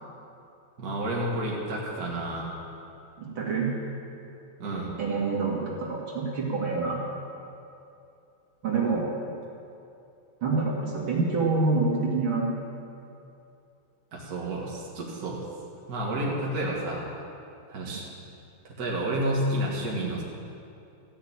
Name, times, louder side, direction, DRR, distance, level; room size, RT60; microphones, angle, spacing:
voice 1, 0.8-2.5 4.6-4.9 14.1-15.4 15.9-17.1 17.7-18.1 18.6-20.2, right 1 dB, 45° right, -4 dB, 2.1 m, -30 dB
voice 2, 3.2-3.7 5.0-7.0 8.6-9.0 10.4-12.5 17.8-18.0, right 4 dB, 70° right, -3 dB, 2.9 m, -27 dB
14.5 x 6.7 x 8.6 m, 2.7 s
omnidirectional pair, 2.3 m